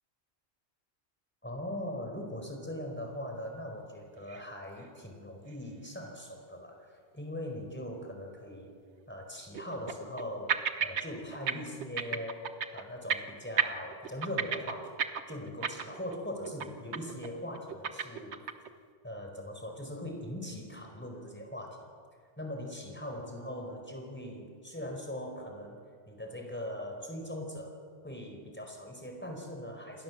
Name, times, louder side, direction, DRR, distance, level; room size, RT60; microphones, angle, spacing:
voice 1, 1.4-8.7 9.1-15.0 15.3-18.5 19.0-21.9 22.4-27.8 28.0-30.0, left 1 dB, 10° left, 2 dB, 4.5 m, -41 dB
sound 1, 4.3-4.5 4.8-4.9 5.5-5.6 8.8-8.9 9.5-10.2 10.5-11.1 11.3-11.5 11.8-12.8 13.1-13.3 13.6-16.2 16.4-16.7 16.9-17.3 17.5-18.7, right 7 dB, 80° right, 1.3 m, -32 dB
28.5 x 21.0 x 7.3 m, 2.1 s
omnidirectional pair, 1.1 m